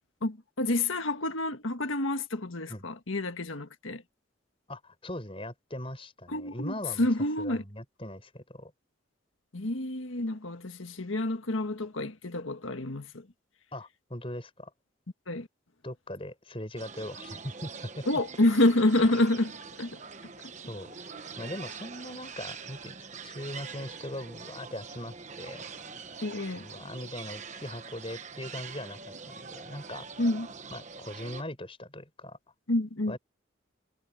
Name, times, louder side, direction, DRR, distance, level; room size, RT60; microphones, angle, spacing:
voice 1, 0.2-4.0 6.3-7.6 9.5-13.3 15.3-15.5 18.1-19.5 19.8-20.0 26.2-26.6 30.2-30.5 32.7-33.2, left 1 dB, 90° left, 1.7 m, -28 dB
voice 2, 4.7-7.1 7.4-8.7 13.7-14.7 15.8-18.2 20.7-20.9 21.4-25.6 26.5-30.1 30.7-32.4 33.1-33.2, left 1 dB, 30° left, 6.2 m, -40 dB
sound 1, 16.8-31.4, right 5 dB, 35° right, 1.2 m, -44 dB
head